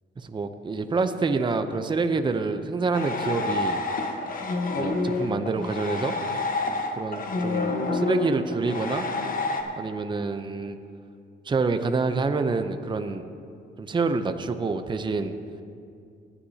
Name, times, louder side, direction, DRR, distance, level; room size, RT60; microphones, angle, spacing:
voice 1, 0.2-3.8 4.8-6.1 7.0-9.1 9.8-10.8 11.4-13.2 13.8-15.3, right 4 dB, 25° right, 8 dB, 0.6 m, -27 dB
sound 1, 2.9-9.6, left 3 dB, 45° left, 1.2 m, -28 dB
19.5 x 9.9 x 2.8 m, 2.4 s
cardioid pair, 90°, 20 cm